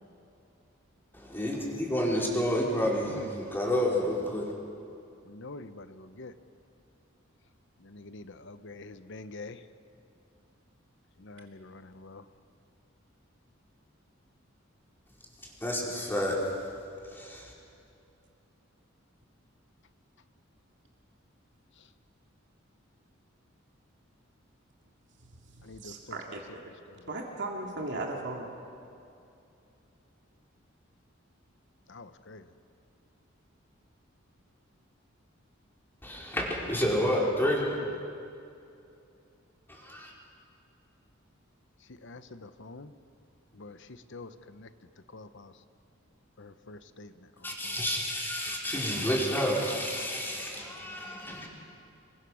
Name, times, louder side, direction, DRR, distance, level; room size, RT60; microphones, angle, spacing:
voice 1, 1.1-4.5 15.6-16.4 17.1-17.5 36.0-37.8 39.7-40.1 47.4-51.5, equal, 10° left, -3 dB, 4.7 m, -30 dB
voice 2, 5.3-6.3 7.8-9.6 11.2-12.2 25.6-25.9 31.9-32.4 37.4-37.9 42.0-42.9 43.5-44.7 45.1-45.5 46.4-47.1 47.6-47.8, left 3 dB, 65° left, 11 dB, 1.0 m, -46 dB
voice 3, 25.5-26.6 27.1-28.5, right 2 dB, 60° right, 0 dB, 2.5 m, -37 dB
27.5 x 23.5 x 6.4 m, 2.6 s
head